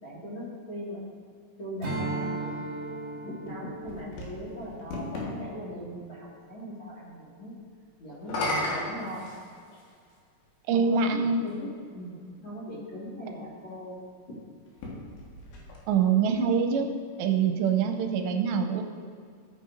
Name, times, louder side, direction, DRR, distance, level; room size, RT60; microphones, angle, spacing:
voice 1, 0.0-1.0 1.6-2.6 3.2-7.5 8.0-9.3 10.7-14.0, equal, 40° left, -9 dB, 2.0 m, -39 dB
Strum, 1.8-6.5, right 2 dB, 35° right, 2.1 m, -37 dB
sound 1, 3.5-5.3 8.1-9.9 10.9-11.0 14.7-16.2, left 1 dB, 80° left, 3.8 m, -34 dB
voice 2, 10.7-11.4 15.9-16.9 17.2-18.8, right 6 dB, 85° right, 5 dB, 2.8 m, -24 dB
16.0 x 9.3 x 2.6 m, 2.1 s
omnidirectional pair, 5.0 m